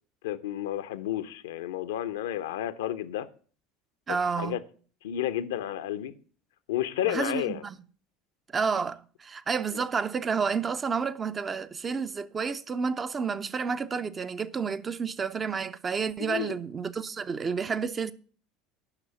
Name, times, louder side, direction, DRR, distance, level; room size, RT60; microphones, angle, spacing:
voice 1, 0.2-3.3 4.1-4.6 5.0-6.1 6.7-7.6 16.2-16.6, left 12 dB, 65° left, 0.7 m, -31 dB
voice 2, 4.1-4.6 7.0-7.8 8.5-18.1, right 5 dB, 25° right, 0.6 m, -30 dB
8.9 x 6.2 x 8.3 m
figure-of-eight pair, 70°, 0 cm